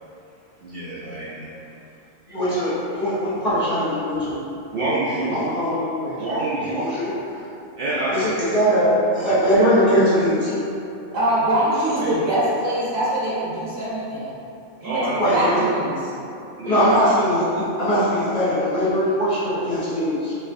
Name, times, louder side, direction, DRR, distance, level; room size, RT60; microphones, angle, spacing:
voice 1, 0.6-1.5 4.7-5.4 6.2-6.8 7.8-8.3 9.1-9.3 12.0-12.3 14.8-15.3 16.6-17.0, right 2 dB, 60° right, -9 dB, 0.7 m, -27 dB
voice 2, 2.3-4.4 5.3-6.2 6.7-7.5 8.1-10.5 15.2-15.6 16.6-20.4, equal, 40° left, -12 dB, 0.7 m, -21 dB
voice 3, 11.1-14.3 14.8-16.1, right 1 dB, 75° right, -9 dB, 1.3 m, -23 dB
3.2 x 3.2 x 2.5 m, 2.7 s
omnidirectional pair, 1.3 m